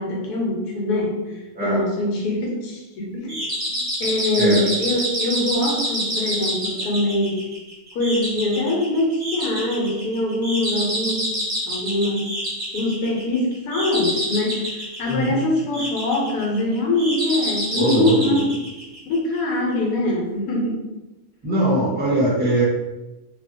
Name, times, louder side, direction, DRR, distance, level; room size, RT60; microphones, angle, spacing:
voice 1, 0.0-3.4 4.0-7.5 7.9-11.3 11.7-12.3 12.7-14.7 15.0-18.5 19.0-20.9, left 1 dB, 90° left, -2 dB, 1.3 m, -23 dB
sound 1, 3.3-19.4, equal, 40° right, 0.6 m, -28 dB
voice 2, 15.1-15.4 17.7-18.4 21.4-22.6, right 1 dB, 10° right, -8 dB, 0.9 m, -21 dB
2.8 x 2.3 x 2.6 m, 1.0 s
omnidirectional pair, 1.6 m